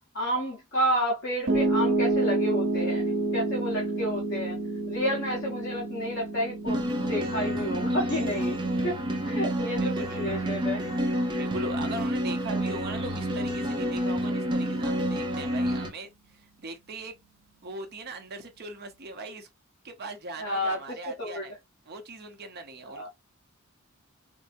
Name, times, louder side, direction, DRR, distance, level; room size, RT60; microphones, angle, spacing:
voice 1, 0.1-4.6 4.9-8.6 8.8-10.8 20.4-21.5 22.9-23.1, equal, 55° left, 1.2 m, -31 dB
Piano, 1.5-13.6, right 2 dB, 70° right, 1.1 m, -31 dB
sound 1, 6.7-15.9, equal, 20° right, 0.6 m, -29 dB
voice 2, 9.8-10.4 11.4-17.1 17.6-19.5 19.8-21.5 21.9-23.1, right 2 dB, 50° right, 0.9 m, -40 dB
4.5 x 2.1 x 2.6 m
head